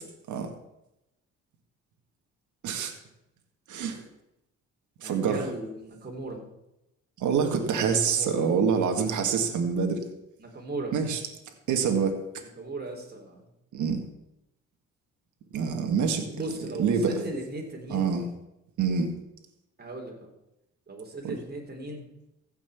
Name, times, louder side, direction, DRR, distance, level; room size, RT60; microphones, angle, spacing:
voice 1, 3.7-4.0 5.0-5.5 7.2-10.0 10.9-11.2 11.7-12.2 13.7-14.0 15.5-16.3 16.8-17.2 17.9-18.3 18.8-19.1 21.2-21.4, right 6 dB, 75° right, 4 dB, 1.9 m, -26 dB
voice 2, 5.0-6.5 7.9-8.4 10.4-10.9 12.4-13.5 16.3-18.1 19.8-20.3 20.9-22.1, right 2 dB, 35° right, 1 dB, 3.6 m, -37 dB
15.0 x 6.0 x 7.1 m, 0.89 s
cardioid pair, 90°, 30 cm